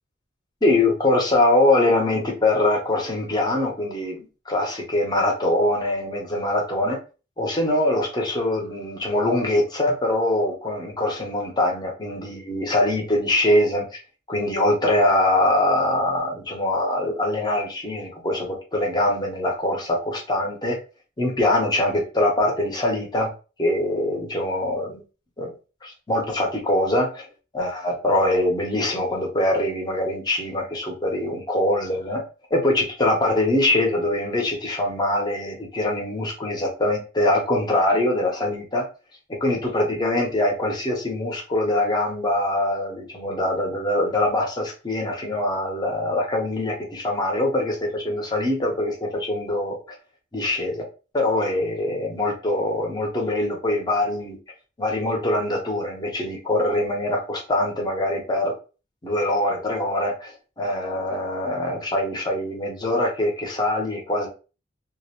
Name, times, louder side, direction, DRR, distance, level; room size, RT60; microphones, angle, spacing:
voice 1, 0.6-7.0 7.4-14.0 14.3-20.8 21.2-23.3 23.6-25.0 25.4-25.5 25.8-27.3 27.5-32.2 32.5-38.9 39.4-49.8 50.3-50.8 51.1-54.4 54.8-58.6 59.0-64.3, left 1 dB, 25° left, 0 dB, 0.7 m, -23 dB
2.4 x 2.0 x 2.8 m, 0.33 s
head